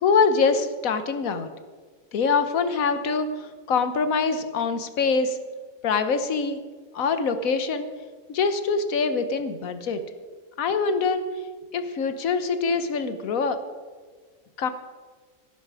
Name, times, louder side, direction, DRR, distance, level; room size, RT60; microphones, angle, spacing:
voice 1, 0.0-1.5 2.1-5.4 5.8-6.6 6.9-7.9 8.3-10.0 10.6-11.2 11.7-13.6 14.6-14.7, left 5 dB, 70° left, 10 dB, 1.4 m, -24 dB
17.0 x 10.0 x 4.8 m, 1.5 s
omnidirectional pair, 1.5 m